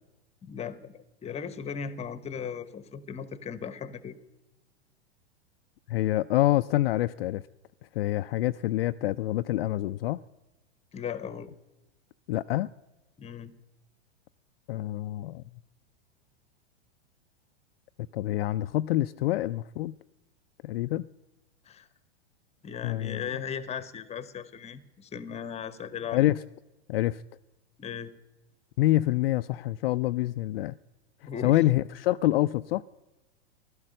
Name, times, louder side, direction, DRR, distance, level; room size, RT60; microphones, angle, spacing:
voice 1, 0.4-4.2 10.9-11.5 13.2-13.5 21.7-21.9 22.6-26.3 27.8-28.1 31.3-31.6, left 7 dB, 20° left, 1.0 m, -37 dB
voice 2, 5.9-7.4 7.9-10.2 12.3-12.7 14.7-15.4 18.1-20.0 20.6-21.1 22.8-23.3 26.1-26.4 26.9-27.2 28.8-30.7 31.4-32.8, left 15 dB, 60° left, 0.5 m, -26 dB
15.5 x 12.0 x 6.4 m
hypercardioid pair, 105°, 34 cm